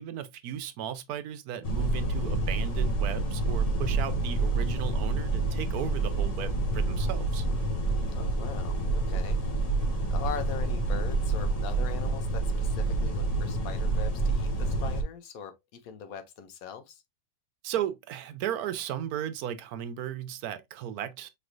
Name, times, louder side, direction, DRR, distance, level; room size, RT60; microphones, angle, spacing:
voice 1, 0.0-7.4 17.6-21.3, right 10 dB, 80° right, 1.1 m, -35 dB
sound 1, 1.6-15.0, right 2 dB, 40° left, 0.5 m, -28 dB
voice 2, 8.1-9.4 10.1-17.0, left 7 dB, 70° left, 1.1 m, -41 dB
4.9 x 3.2 x 2.4 m
omnidirectional pair, 1.6 m